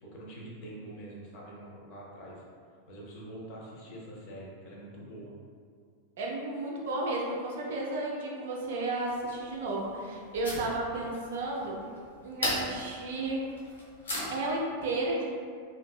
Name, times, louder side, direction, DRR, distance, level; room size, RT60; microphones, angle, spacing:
voice 1, 0.0-2.4 2.9-5.3, right 1 dB, 45° left, -4 dB, 0.6 m, -45 dB
voice 2, 6.2-11.8 12.2-13.4 14.3-15.3, right 2 dB, 55° right, -2 dB, 0.4 m, -33 dB
sound 1, 9.1-14.6, left 1 dB, 70° left, 0.8 m, -38 dB
2.6 x 2.5 x 2.2 m, 2.1 s
figure-of-eight pair, 90°, 0 cm